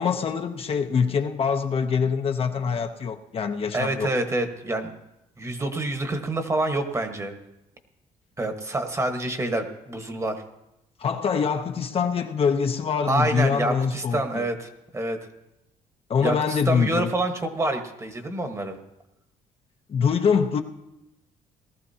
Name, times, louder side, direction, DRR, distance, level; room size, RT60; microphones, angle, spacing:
voice 1, 0.0-4.1 11.0-14.5 16.1-17.1 19.9-20.6, left 6 dB, 40° left, 0.7 m, -24 dB
voice 2, 3.7-5.0 5.4-7.3 8.4-10.4 13.1-15.2 16.2-18.8, right 2 dB, 20° right, 1.3 m, -27 dB
19.0 x 13.5 x 2.8 m
cardioid pair, 110°, 14 cm